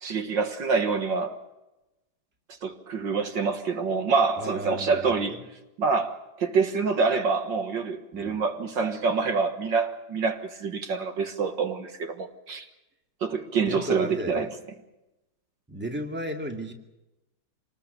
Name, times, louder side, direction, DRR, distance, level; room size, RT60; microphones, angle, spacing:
voice 1, 0.0-1.4 2.6-5.4 5.8-12.7 13.2-14.5, right 4 dB, 65° right, 2.2 m, -26 dB
voice 2, 4.4-5.4 8.1-8.4 13.7-14.5 15.7-16.7, equal, 5° right, 2.1 m, -34 dB
27.0 x 19.5 x 6.8 m
omnidirectional pair, 2.2 m